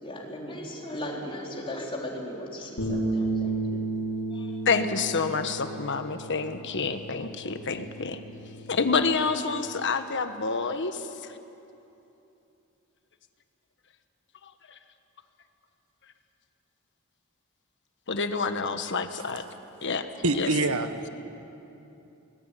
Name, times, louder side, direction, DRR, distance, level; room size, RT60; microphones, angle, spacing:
voice 1, 0.0-3.8 4.3-4.6, left 1 dB, 25° left, -2 dB, 4.0 m, -37 dB
Bass guitar, 2.8-9.0, right 2 dB, 85° left, 4.0 m, -33 dB
voice 2, 4.6-8.2 8.7-11.4 14.4-14.8 18.1-19.5 19.8-20.1 20.3-20.5, left 4 dB, 55° left, 8 dB, 1.4 m, -28 dB
voice 3, 20.2-21.1, right 2 dB, 70° right, 8 dB, 1.5 m, -25 dB
24.0 x 20.0 x 9.1 m, 2.9 s
head